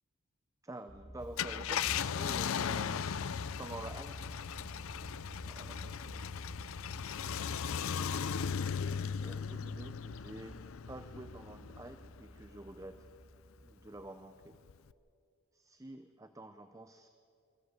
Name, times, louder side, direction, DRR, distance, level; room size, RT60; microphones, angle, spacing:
voice 1, 0.6-3.1 3.6-4.3 5.4-6.4 7.5-8.6 9.2-13.0 13.6-14.6 15.5-17.1, right 2 dB, 15° right, 9 dB, 0.6 m, -49 dB
sound 1, 0.9-14.0, equal, 5° left, 2.3 m, -50 dB
Car, 1.2-12.1 12.5-12.6 14.7-14.9, left 7 dB, 70° left, 0.5 m, -37 dB
24.5 x 14.5 x 8.1 m, 2.5 s
head